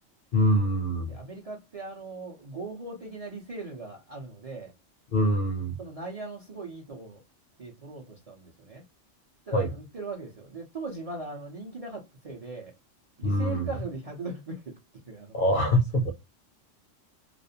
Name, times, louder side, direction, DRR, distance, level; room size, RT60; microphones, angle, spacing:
voice 1, 0.3-1.2 5.1-5.8 9.5-9.7 13.2-13.7 15.3-16.1, equal, 55° left, 0.6 m, -24 dB
voice 2, 1.1-4.7 5.8-7.2 7.6-8.8 9.5-12.7 13.2-14.8 15.1-15.4, right 3 dB, 40° right, 0.5 m, -39 dB
2.4 x 2.0 x 2.6 m
omnidirectional pair, 1.3 m